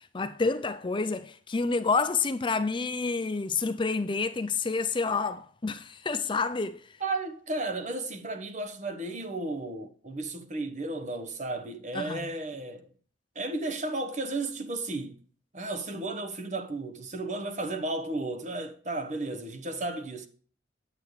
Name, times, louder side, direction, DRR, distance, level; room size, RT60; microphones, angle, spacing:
voice 1, 0.1-6.8 11.9-12.2, left 4 dB, 25° left, 0.5 m, -28 dB
voice 2, 7.0-12.9 13.3-15.2 15.5-20.3, right 2 dB, 40° right, 1.0 m, -34 dB
8.5 x 8.3 x 3.2 m
head